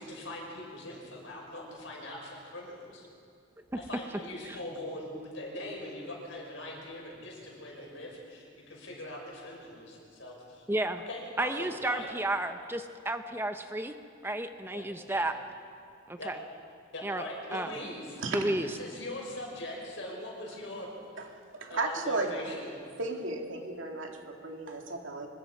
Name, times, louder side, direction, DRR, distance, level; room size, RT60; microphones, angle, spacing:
voice 1, 0.0-3.0 3.7-10.6 11.1-12.1 14.7-15.2 16.2-16.3 16.9-18.2 18.6-20.9 21.7-22.7, left 1 dB, 75° left, -1 dB, 6.0 m, -41 dB
voice 2, 10.7-11.0 11.4-13.9 14.2-15.3 16.1-16.4 17.0-17.2 17.5-17.7 18.3-18.7, right 1 dB, 10° right, 8 dB, 0.6 m, -32 dB
voice 3, 21.5-22.3 23.0-25.3, right 3 dB, 80° right, 2 dB, 2.5 m, -34 dB
25.0 x 21.0 x 5.4 m, 2.4 s
head